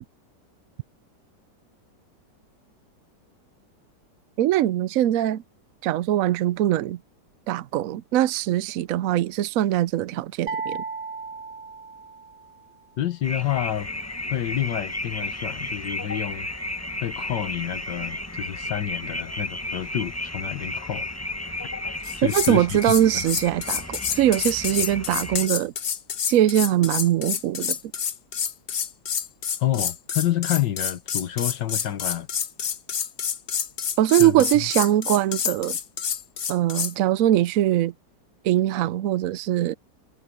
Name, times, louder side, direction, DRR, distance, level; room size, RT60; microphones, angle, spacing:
voice 1, 4.4-5.4 5.8-7.0 7.5-10.8 22.2-25.7 26.3-27.8 34.0-35.8 36.5-37.9 38.4-39.7, right 13 dB, 75° right, 0.8 m, -22 dB
sound 1, 10.5-12.6, right 4 dB, 30° right, 1.7 m, -34 dB
voice 2, 13.0-13.9 14.3-16.5 17.0-21.1 22.2-22.8 23.1-23.2 29.6-32.3 34.2-34.3, left 11 dB, 75° left, 1.7 m, -28 dB
sound 2, 13.2-25.5, left 2 dB, 10° left, 1.2 m, -33 dB
sound 3, 22.0-22.5 22.8-36.9, left 7 dB, 50° left, 0.7 m, -28 dB
omnidirectional pair, 1.9 m